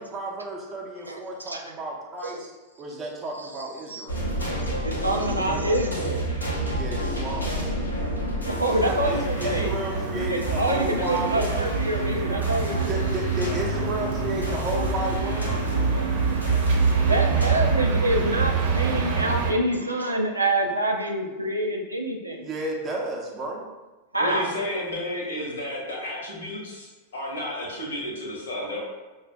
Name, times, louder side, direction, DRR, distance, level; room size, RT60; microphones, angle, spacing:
voice 1, 0.0-2.5 2.8-4.3 6.7-7.6 8.8-11.7 12.9-15.6 22.4-23.6, right 2 dB, 20° right, -2 dB, 0.8 m, -32 dB
voice 2, 1.1-1.6 2.2-2.4 3.4-3.5 3.9-4.0 4.8-6.2 8.5-9.8 10.1-12.9 17.0-22.5 24.1-24.5, right 1 dB, 85° right, 1 dB, 0.4 m, -26 dB
sound 1, 4.1-17.6, right 2 dB, 80° left, 0.8 m, -30 dB
sound 2, 8.8-19.5, right 4 dB, 50° right, 0.9 m, -26 dB
voice 3, 24.2-28.8, left 1 dB, 60° left, -3 dB, 1.1 m, -32 dB
5.7 x 2.4 x 2.3 m, 1.2 s
figure-of-eight pair, 90°, 0 cm